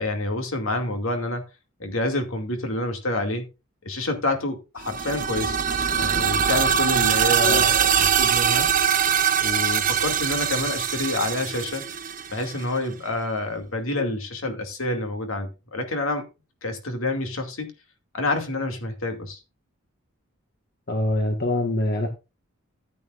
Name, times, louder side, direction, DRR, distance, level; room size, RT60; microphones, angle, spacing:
voice 1, 0.0-1.4 1.8-3.5 3.8-5.6 5.9-8.7 9.4-11.8 12.3-16.2 16.6-17.7 18.1-19.4, left 2 dB, 70° left, 2.3 m, -28 dB
sound 1, 4.8-12.6, right 8 dB, 40° right, 0.7 m, -22 dB
voice 2, 20.9-22.1, left 1 dB, 45° left, 1.5 m, -24 dB
14.0 x 8.7 x 2.5 m
head